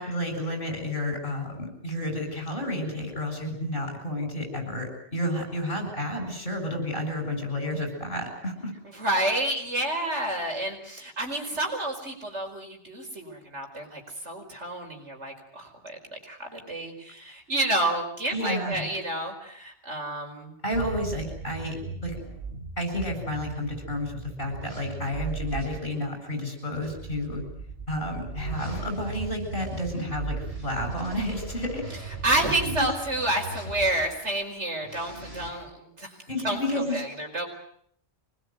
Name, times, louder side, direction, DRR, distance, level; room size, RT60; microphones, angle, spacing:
voice 1, 0.0-8.7 18.3-18.9 20.6-21.8 22.0-22.2 22.8-24.1 24.4-27.4 27.9-31.8 32.3-32.9 36.3-37.0, left 1 dB, 50° left, 4 dB, 8.2 m, -31 dB
voice 2, 8.9-20.5 32.2-36.1 36.4-37.5, right 1 dB, 85° right, 3 dB, 5.1 m, -29 dB
sound 1, 20.7-25.8 26.7-34.1 34.8-35.5, right 3 dB, 65° right, 7.2 m, -37 dB
25.0 x 20.5 x 9.4 m, 0.66 s
omnidirectional pair, 1.2 m